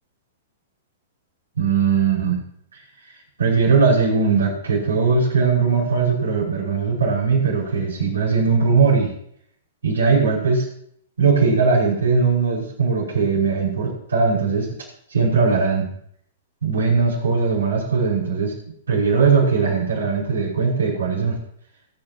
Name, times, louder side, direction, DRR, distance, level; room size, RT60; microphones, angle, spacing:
voice 1, 1.6-2.4 3.4-9.1 9.8-10.7 11.2-14.7 15.1-15.9 16.6-18.5 18.9-21.4, right 5 dB, 70° right, -2 dB, 5.5 m, -19 dB
24.0 x 9.4 x 3.0 m, 0.67 s
figure-of-eight pair, 105°, 0 cm